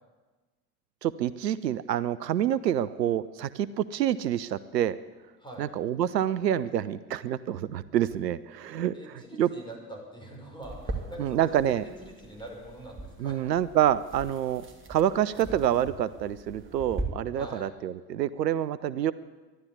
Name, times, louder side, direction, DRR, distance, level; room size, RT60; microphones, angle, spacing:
voice 1, 1.0-5.0 5.6-9.5 11.2-11.8 13.2-14.6 14.9-19.1, right 11 dB, 75° right, 17 dB, 0.6 m, -27 dB
voice 2, 8.9-13.4 17.3-17.7, right 1 dB, 10° left, 0 dB, 5.6 m, -43 dB
sound 1, 10.6-17.0, right 2 dB, 25° right, 2.8 m, -41 dB
13.0 x 11.0 x 9.6 m, 1.3 s
figure-of-eight pair, 70°, 49 cm